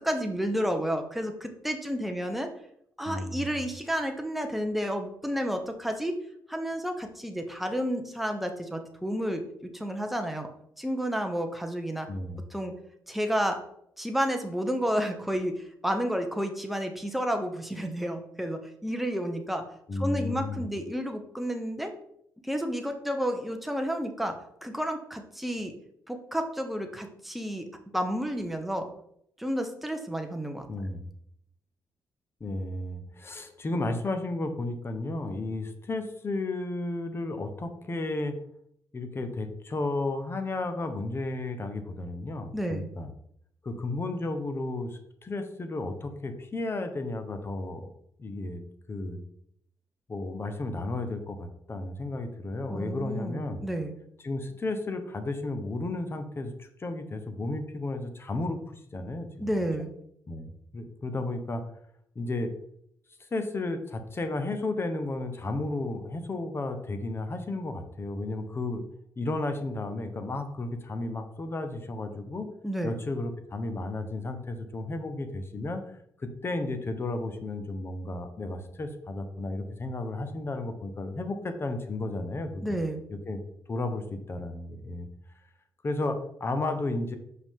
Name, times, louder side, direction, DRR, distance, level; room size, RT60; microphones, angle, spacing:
voice 1, 0.0-2.5 3.0-6.2 6.5-10.5 10.8-12.1 12.5-12.7 13.1-13.6 14.0-19.6 20.0-21.9 22.4-25.7 26.1-27.7 27.9-28.9 29.4-30.7 42.5-42.9 52.7-53.9 59.4-59.9 72.6-72.9 82.6-83.0, equal, ahead, 5 dB, 1.0 m, -31 dB
voice 2, 3.0-3.6 12.1-12.5 19.9-20.7 30.7-31.1 32.4-38.4 38.9-43.1 43.6-47.9 48.2-48.6 48.9-49.2 50.1-53.6 54.2-59.3 60.3-61.6 62.1-62.5 63.3-68.8 69.2-72.5 72.8-75.9 76.2-82.8 83.3-83.4 83.7-85.1 85.8-87.2, left 2 dB, 30° left, 7 dB, 1.0 m, -33 dB
5.9 x 5.2 x 3.7 m, 0.71 s
cardioid pair, 105°, 7 cm